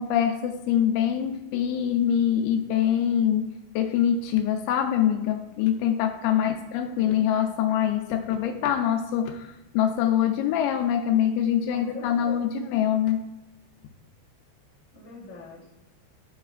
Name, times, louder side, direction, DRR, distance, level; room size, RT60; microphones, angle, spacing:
voice 1, 0.0-9.5 9.7-13.2, left 9 dB, 85° left, 5 dB, 2.8 m, -24 dB
voice 2, 6.2-6.5 7.0-7.1 11.7-12.5 14.9-15.8, left 4 dB, 25° left, -6 dB, 1.9 m, -43 dB
13.0 x 5.7 x 2.4 m, 0.98 s
omnidirectional pair, 5.3 m